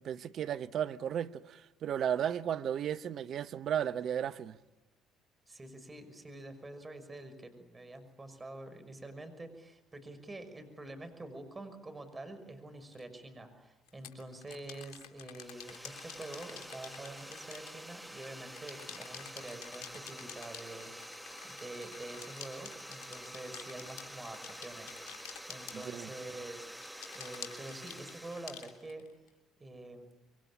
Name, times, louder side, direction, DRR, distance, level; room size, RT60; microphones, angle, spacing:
voice 1, 0.0-4.6 25.7-26.1, right 9 dB, 55° right, 0.9 m, -34 dB
voice 2, 5.5-20.9 21.4-25.0 25.5-26.7 27.1-29.0 29.6-30.1, right 2 dB, 20° right, 5.9 m, -47 dB
sound 1, 12.9-13.0 13.9-18.3 18.5-26.4 26.8-29.3, left 9 dB, 75° left, 3.3 m, -49 dB
sound 2, 15.3-28.8, equal, 5° right, 1.5 m, -48 dB
26.5 x 23.5 x 8.8 m
hypercardioid pair, 60°, 0 cm